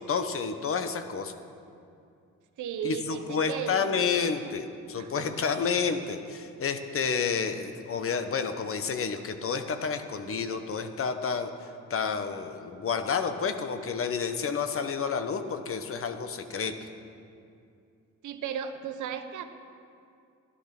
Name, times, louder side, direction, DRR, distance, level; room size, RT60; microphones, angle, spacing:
voice 1, 0.0-1.3 2.8-16.7, left 6 dB, 45° left, 8 dB, 1.1 m, -30 dB
voice 2, 2.6-4.0 4.4-4.5 5.0-5.3 18.2-19.4, right 8 dB, 80° right, 8 dB, 1.0 m, -35 dB
13.5 x 11.5 x 6.0 m, 2.5 s
cardioid pair, 90°, 30 cm